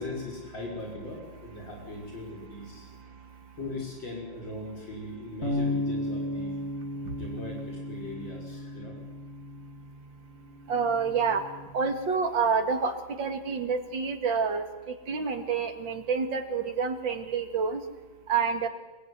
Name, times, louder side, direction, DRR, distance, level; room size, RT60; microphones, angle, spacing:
voice 1, 0.0-2.9 3.6-6.6 7.1-9.0, left 2 dB, 80° left, -1 dB, 6.7 m, -39 dB
voice 2, 2.8-3.6 7.0-7.2 10.7-17.8 18.3-18.7, right 5 dB, 85° right, 6 dB, 2.9 m, -29 dB
sound 1, 5.4-11.7, left 1 dB, 50° left, 4.8 m, -35 dB
25.5 x 23.0 x 9.8 m, 1.1 s
omnidirectional pair, 2.0 m